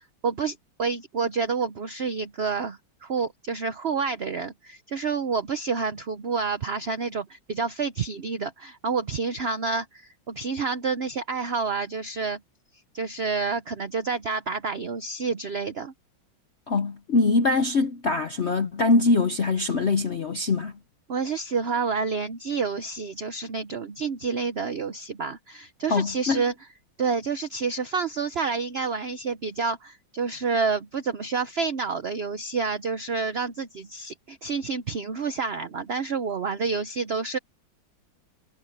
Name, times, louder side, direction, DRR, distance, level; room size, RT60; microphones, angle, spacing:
voice 1, 0.2-12.4 12.9-15.9 21.1-26.5 27.0-37.4, right 5 dB, 55° right, 0.7 m, -29 dB
voice 2, 16.7-20.7 25.9-26.4, left 3 dB, 50° left, 0.9 m, -23 dB
omnidirectional pair, 2.2 m